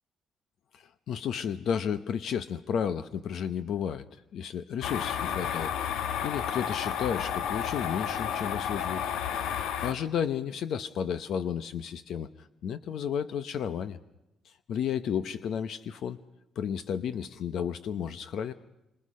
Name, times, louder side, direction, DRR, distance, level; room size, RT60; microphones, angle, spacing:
voice 1, 0.7-9.0 9.8-14.0 14.4-16.2 16.6-18.5, left 8 dB, 55° left, 12 dB, 0.9 m, -33 dB
sound 1, 4.8-9.9, left 8 dB, 85° left, 1.7 m, -31 dB
29.5 x 27.0 x 5.6 m, 0.91 s
cardioid pair, 175°, 0 cm